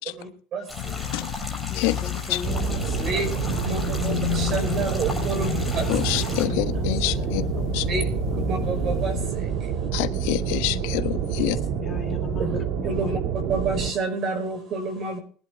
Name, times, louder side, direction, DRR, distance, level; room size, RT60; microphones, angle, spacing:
voice 1, 0.2-1.3 3.0-3.3 3.6-5.9 7.7-8.0 8.5-9.9 12.4-12.6 12.8-13.2 13.5-15.2, right 3 dB, 35° right, 5.3 m, -29 dB
sound 1, 0.7-9.3, left 12 dB, 45° left, 1.1 m, -32 dB
sound 2, 0.7-6.5, left 2 dB, ahead, 6.7 m, -37 dB
voice 2, 1.7-3.6 5.3-8.0 8.3-8.5 11.4-12.5 12.8-13.1, left 5 dB, 25° left, 2.0 m, -39 dB
sound 3, 2.4-13.9, right 7 dB, 55° right, 2.1 m, -28 dB
voice 3, 5.9-7.4 7.7-7.8 9.9-11.5, left 17 dB, 80° left, 1.2 m, -26 dB
22.5 x 11.0 x 3.5 m
cardioid pair, 175°, 0 cm